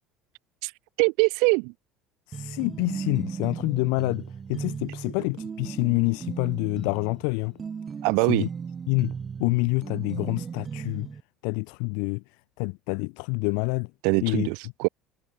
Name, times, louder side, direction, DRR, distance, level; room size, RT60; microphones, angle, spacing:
voice 1, 1.0-1.7 8.0-8.5 14.0-14.9, right 35 dB, 80° right, 4.6 m, -23 dB
voice 2, 2.3-7.6 8.3-8.5 8.9-9.1 9.4-11.1 11.4-12.2 12.6-13.9 14.2-14.5, left 40 dB or more, 80° left, 5.8 m, -27 dB
sound 1, 2.3-11.2, right 6 dB, 25° right, 6.6 m, -36 dB
cardioid pair, 135°, 0 cm